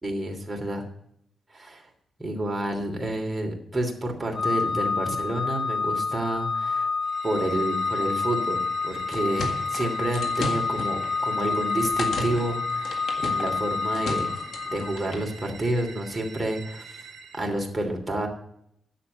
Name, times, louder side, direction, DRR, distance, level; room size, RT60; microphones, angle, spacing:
voice 1, 0.0-0.8 1.5-1.8 2.2-6.9 7.2-14.3 14.6-17.0 17.3-18.3, right 1 dB, 15° right, 1 dB, 3.0 m, -29 dB
Organ, 4.3-15.1, left 4 dB, 55° left, 0.5 m, -28 dB
sound 1, 7.0-17.5, right 4 dB, 70° right, 1.5 m, -44 dB
sound 2, 8.9-15.3, left 2 dB, 75° left, 1.8 m, -36 dB
10.5 x 7.0 x 8.2 m, 0.73 s
cardioid pair, 90°, 0 cm